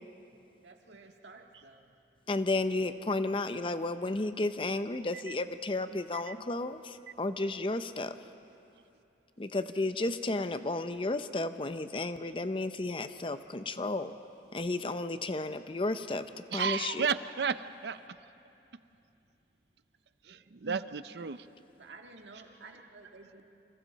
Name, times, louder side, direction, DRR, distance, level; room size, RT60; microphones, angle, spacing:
voice 1, 0.6-1.9 20.2-20.4 21.8-23.4, right 3 dB, 90° right, 3 dB, 1.8 m, -52 dB
voice 2, 2.3-8.2 9.4-14.1 14.5-17.1, left 2 dB, 30° left, 11 dB, 0.6 m, -33 dB
voice 3, 16.5-18.0 20.3-21.5, right 6 dB, 70° right, 13 dB, 0.6 m, -33 dB
28.5 x 26.0 x 4.1 m, 2.7 s
head